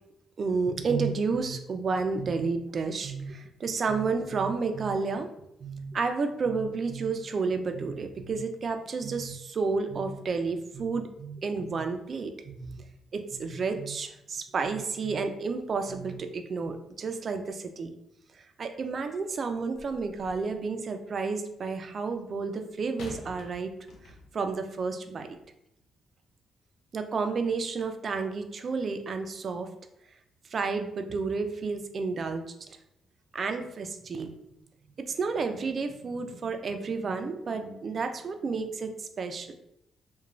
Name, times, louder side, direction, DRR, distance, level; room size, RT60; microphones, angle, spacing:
voice 1, 0.4-5.3 5.6-12.8 13.1-17.9 18.3-23.7 24.3-25.3 26.9-29.7 30.5-32.6 33.3-34.3 35.1-39.5, right 4 dB, 45° right, 7 dB, 0.3 m, -31 dB
sound 1, 19.7-20.6 23.0-24.5 25.3-25.4, left 2 dB, 70° left, 0.5 m, -47 dB
2.9 x 2.2 x 2.5 m, 0.79 s
cardioid pair, 90°, 0 cm